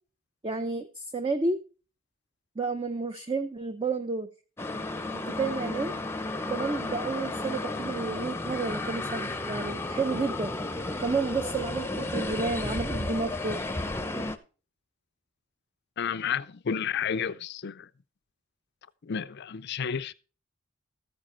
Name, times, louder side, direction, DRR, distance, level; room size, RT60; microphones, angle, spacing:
voice 1, 0.4-1.6 2.6-4.3 5.1-5.9 6.5-10.5 11.0-13.6 14.1-14.3, right 3 dB, 25° right, 0.6 m, -31 dB
sound 1, 4.6-14.4, left 2 dB, 10° left, 0.7 m, -33 dB
voice 2, 16.0-17.9 19.0-20.1, left 7 dB, 50° left, 0.5 m, -31 dB
14.0 x 7.4 x 4.4 m
head